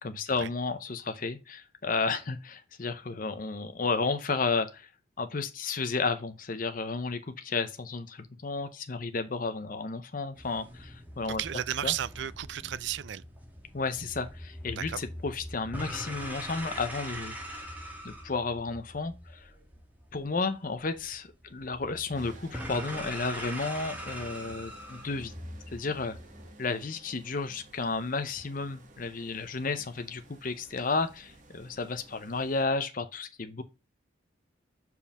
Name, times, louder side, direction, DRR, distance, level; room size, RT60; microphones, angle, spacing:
voice 1, 0.0-4.9 5.2-11.4 11.8-11.9 13.7-17.7 18.0-19.5 20.1-25.3 25.7-26.2 26.6-33.6, left 4 dB, 45° left, 0.7 m, -32 dB
sound 1, 10.4-26.5, equal, 10° right, 1.5 m, -42 dB
voice 2, 11.3-13.2 14.7-15.0, right 11 dB, 65° right, 0.4 m, -34 dB
sound 2, 22.1-32.6, right 2 dB, 40° right, 1.3 m, -54 dB
5.3 x 4.7 x 5.9 m
head